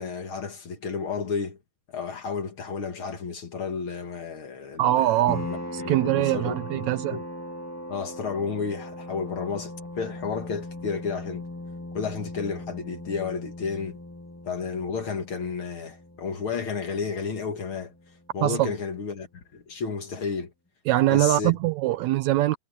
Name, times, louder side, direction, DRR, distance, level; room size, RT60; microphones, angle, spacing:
voice 1, 0.0-1.6 1.9-7.3 7.9-11.5 11.9-14.0 14.5-17.9 18.3-20.5 21.1-21.5 21.9-22.0, left 5 dB, 50° left, 2.1 m, -32 dB
voice 2, 4.8-5.5 5.7-7.2 18.4-18.7 20.9-22.6, right 15 dB, 75° right, 1.8 m, -23 dB
sound 1, 5.3-18.5, left 1 dB, 5° left, 1.5 m, -39 dB
omnidirectional pair, 3.5 m